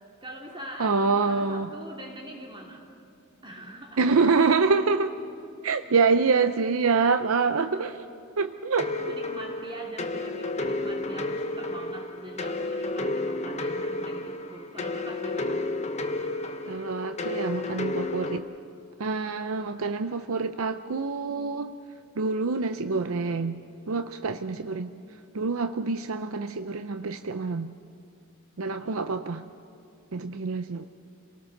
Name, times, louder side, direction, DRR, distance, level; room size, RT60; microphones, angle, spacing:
voice 1, 0.2-2.9 3.4-4.1 7.5-7.9 9.0-15.6 24.4-24.8, right 1 dB, 25° right, 0 dB, 2.5 m, -43 dB
voice 2, 0.8-1.7 4.0-5.2 5.6-8.0 8.4-8.9 16.7-18.5 19.0-21.8 22.2-23.6 23.9-24.9 25.3-27.7 28.6-29.4 30.1-30.8, right 4 dB, 90° right, 9 dB, 0.6 m, -26 dB
sound 1, 8.8-18.4, left 2 dB, 35° left, 1.2 m, -32 dB
28.5 x 18.5 x 6.6 m, 2.5 s
head